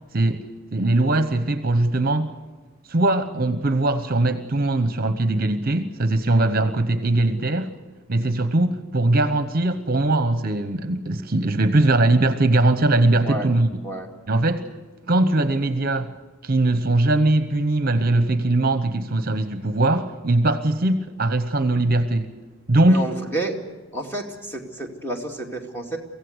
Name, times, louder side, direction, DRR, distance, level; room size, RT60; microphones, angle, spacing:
voice 1, 0.1-0.4 0.7-2.3 2.9-7.7 8.1-13.7 14.3-14.7 15.1-16.1 16.4-22.3 22.7-23.0, right 2 dB, 40° right, 10 dB, 1.0 m, -20 dB
voice 2, 22.9-23.6 23.9-26.0, right 2 dB, 10° left, 2 dB, 2.4 m, -30 dB
24.5 x 16.0 x 8.0 m, 1.3 s
head